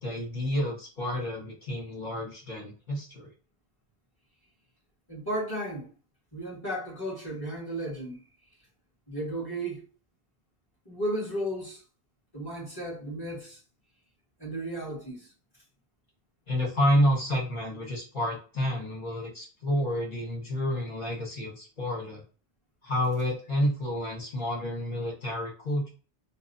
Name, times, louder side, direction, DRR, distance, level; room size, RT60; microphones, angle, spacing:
voice 1, 0.0-3.3 16.5-22.2 22.8-25.9, equal, 50° left, 2.0 m, -29 dB
voice 2, 5.1-5.9 6.3-8.2 9.1-9.8 10.9-11.8 12.3-13.6 14.4-15.3, right 1 dB, 20° left, 2.1 m, -34 dB
3.8 x 2.3 x 4.1 m
omnidirectional pair, 1.1 m